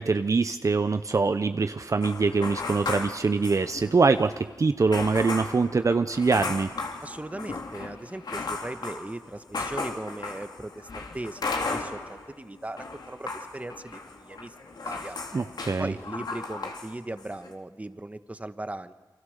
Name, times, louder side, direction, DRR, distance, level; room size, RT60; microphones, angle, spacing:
voice 1, 0.0-6.7 15.3-15.9, right 4 dB, 50° right, 9 dB, 0.8 m, -24 dB
sound 1, 2.0-4.1 4.3-4.4 4.9-12.3 12.6-16.9 17.2-17.5, left 3 dB, 75° left, 3.5 m, -35 dB
voice 2, 7.0-15.2 15.8-18.9, right 2 dB, 20° right, 10 dB, 1.3 m, -38 dB
29.0 x 24.5 x 6.7 m, 1.4 s
wide cardioid pair, 75°, 7 cm